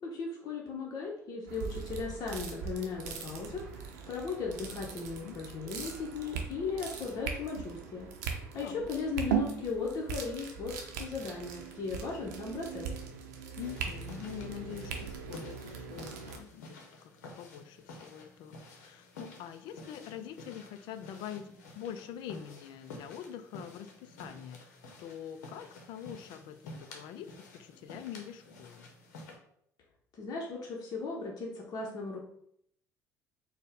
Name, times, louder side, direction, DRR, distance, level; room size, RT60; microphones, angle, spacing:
voice 1, 0.0-8.1 8.3-12.9 30.1-32.2, left 4 dB, 45° left, -3 dB, 0.8 m, -37 dB
sound 1, 1.5-16.4, right 7 dB, 80° right, 0.6 m, -39 dB
sound 2, 13.6-29.3, left 2 dB, 80° left, 0.7 m, -51 dB
voice 2, 13.6-17.1 17.4-24.6 25.0-28.9, left 9 dB, 65° left, 10 dB, 0.4 m, -45 dB
4.2 x 2.1 x 3.4 m, 0.70 s
hypercardioid pair, 60°, 9 cm